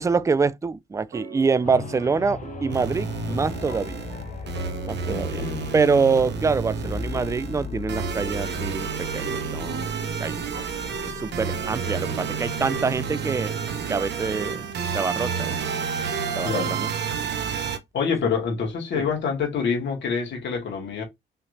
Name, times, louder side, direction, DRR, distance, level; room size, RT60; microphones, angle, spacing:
voice 1, 0.0-4.1 4.9-5.4 5.7-10.4 11.0-13.6 13.9-14.7 14.9-15.6 16.3-16.9 18.9-19.0, right 4 dB, 15° right, 0.4 m, -25 dB
sound 1, 1.1-14.8, right 5 dB, 90° right, 1.8 m, -41 dB
sound 2, 1.6-15.3 15.8-15.9, left 6 dB, 40° left, 0.7 m, -38 dB
sound 3, 2.7-17.8, right 6 dB, 60° right, 0.9 m, -30 dB
voice 2, 5.1-5.7 16.1-16.8 17.9-21.0, left 6 dB, 65° left, 2.3 m, -27 dB
5.6 x 3.2 x 2.7 m
cardioid pair, 90°, 20 cm